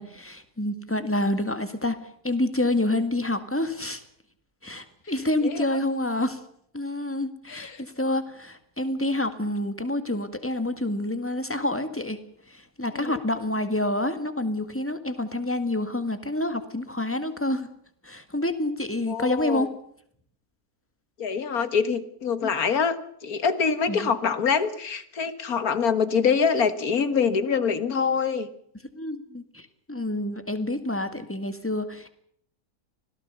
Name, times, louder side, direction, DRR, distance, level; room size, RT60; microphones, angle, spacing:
voice 1, 0.0-2.0 2.2-4.0 4.6-6.4 6.7-12.2 12.5-17.7 18.0-19.7 23.9-24.2 29.0-32.1, left 1 dB, 10° left, 9 dB, 1.9 m, -28 dB
voice 2, 7.5-7.8 12.9-13.2 19.1-19.7 21.2-28.5, left 6 dB, 90° left, 12 dB, 2.1 m, -25 dB
25.5 x 17.5 x 6.9 m, 0.67 s
omnidirectional pair, 1.5 m